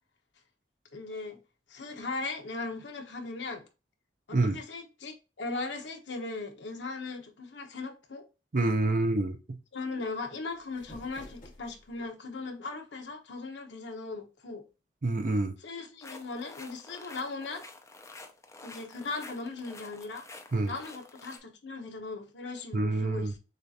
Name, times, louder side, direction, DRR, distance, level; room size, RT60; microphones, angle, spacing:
voice 1, 0.9-1.4 1.7-3.6 4.3-8.2 9.7-14.6 15.6-17.6 18.6-20.3 20.7-23.4, left 3 dB, 70° left, 1.0 m, -38 dB
voice 2, 8.5-9.4 15.0-15.5 20.5-20.7 22.7-23.3, right 2 dB, 50° right, 0.6 m, -27 dB
sound 1, 10.5-12.1, left 1 dB, 50° left, 1.7 m, -51 dB
sound 2, 16.0-21.4, left 3 dB, 15° left, 0.6 m, -49 dB
6.6 x 2.5 x 2.7 m
head